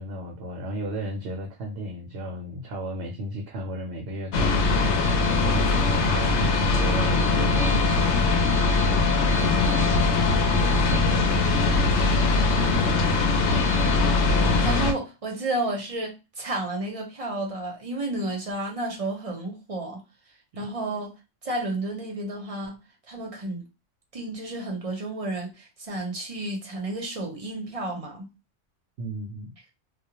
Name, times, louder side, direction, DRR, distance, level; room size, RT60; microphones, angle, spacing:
voice 1, 0.0-8.3 9.3-11.7 29.0-29.5, equal, 65° right, 0.8 m, -35 dB
sound 1, 4.3-14.9, left 3 dB, 70° left, 0.8 m, -21 dB
voice 2, 14.4-20.0 20.6-21.1 21.4-22.8 23.1-23.6 24.1-28.3, right 2 dB, 35° right, 0.6 m, -31 dB
2.3 x 2.1 x 2.8 m
omnidirectional pair, 1.3 m